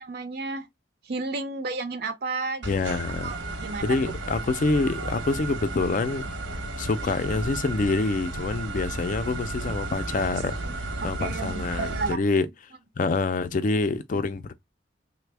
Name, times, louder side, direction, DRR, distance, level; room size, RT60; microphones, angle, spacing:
voice 1, 0.1-0.7 1.1-2.6 3.2-4.0 11.0-12.2, right 3 dB, 55° right, 0.5 m, -32 dB
voice 2, 2.6-3.4 3.8-6.3 6.8-12.5 13.0-14.6, left 3 dB, 45° left, 0.4 m, -26 dB
sound 1, 2.6-12.1, right 2 dB, 85° right, 0.9 m, -33 dB
3.3 x 2.1 x 3.2 m
head